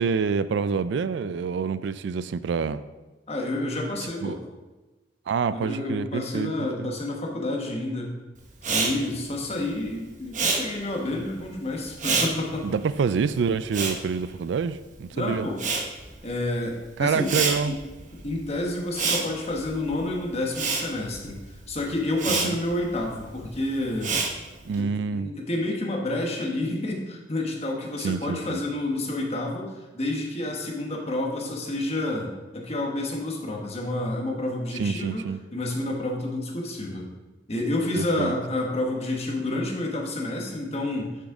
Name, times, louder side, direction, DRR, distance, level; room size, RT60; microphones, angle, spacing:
voice 1, 0.0-2.8 4.2-4.4 5.3-6.5 6.8-6.9 12.6-15.5 17.0-17.7 22.3-22.6 24.6-25.3 28.0-28.6 34.7-35.4 38.0-38.3, right 5 dB, 80° right, 15 dB, 0.3 m, -27 dB
voice 2, 3.3-4.4 5.5-8.1 8.7-12.7 15.1-15.6 16.2-17.3 17.6-17.8 18.2-24.2 24.7-35.2 35.5-37.1 37.5-41.2, left 1 dB, 35° left, 0 dB, 1.3 m, -29 dB
Respiratory sounds, 8.6-15.0 15.3-24.8, right 4 dB, 45° right, 1.0 m, -29 dB
6.4 x 6.4 x 4.9 m, 1.2 s
head